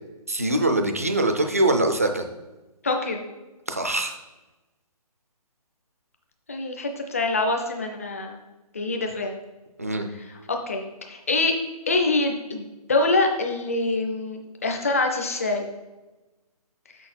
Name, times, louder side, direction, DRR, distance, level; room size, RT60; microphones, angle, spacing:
voice 1, 0.3-2.3 3.7-4.2 9.8-10.1, right 1 dB, 25° right, 6 dB, 0.4 m, -23 dB
voice 2, 2.8-3.2 6.5-8.4 8.7-9.3 10.5-11.5 11.9-15.7, left 3 dB, 25° left, 3 dB, 0.6 m, -25 dB
6.3 x 6.2 x 4.3 m, 1.1 s
hypercardioid pair, 180°, 20 cm